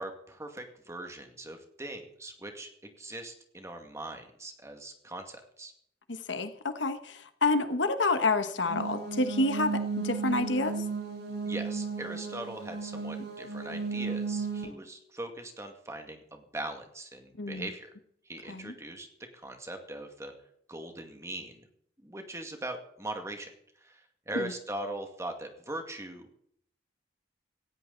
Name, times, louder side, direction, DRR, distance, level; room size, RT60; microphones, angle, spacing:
voice 1, 0.0-5.7 11.5-17.9 18.3-19.1 19.4-20.3 20.7-21.6 22.0-23.5 23.8-26.2, right 1 dB, 15° right, 5 dB, 2.1 m, -40 dB
voice 2, 6.1-10.8 17.4-17.7 18.5-18.7 24.3-24.5, left 3 dB, 85° left, 9 dB, 1.4 m, -29 dB
sound 1, 8.7-14.6, right 4 dB, 60° right, 6.3 m, -34 dB
18.0 x 15.5 x 4.1 m, 0.68 s
head